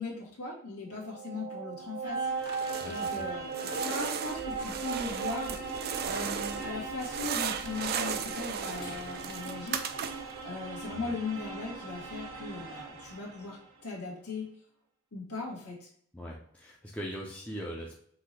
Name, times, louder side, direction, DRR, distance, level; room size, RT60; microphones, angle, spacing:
voice 1, 0.0-2.2 2.4-10.1 10.4-14.5 15.1-15.9, left 3 dB, 75° left, -2 dB, 1.7 m, -39 dB
sound 1, 0.9-13.7, right 4 dB, 65° right, 0.8 m, -39 dB
sound 2, 2.4-3.2 3.5-6.7 7.0-10.4, right 7 dB, 45° right, 0.4 m, -36 dB
voice 2, 2.8-3.3 11.0-11.2 16.1-18.0, equal, 5° left, -3 dB, 0.6 m, -41 dB
sound 3, 4.2-9.3, left 1 dB, 45° left, 1.8 m, -48 dB
5.8 x 2.7 x 3.2 m, 0.64 s
head